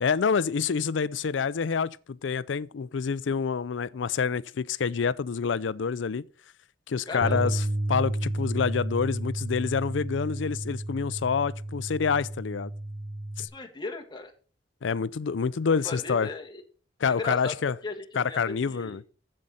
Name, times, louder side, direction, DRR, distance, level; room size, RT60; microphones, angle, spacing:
voice 1, 0.0-6.2 6.9-12.7 13.4-13.5 14.8-16.3 17.0-17.8 18.2-19.0, left 6 dB, 80° left, 0.5 m, -27 dB
voice 2, 7.1-7.5 13.5-14.3 15.8-16.6 17.1-17.6 17.8-19.0, left 3 dB, 25° left, 1.6 m, -36 dB
Bass guitar, 7.2-13.5, right 1 dB, 55° right, 1.1 m, -32 dB
7.7 x 7.6 x 5.4 m
head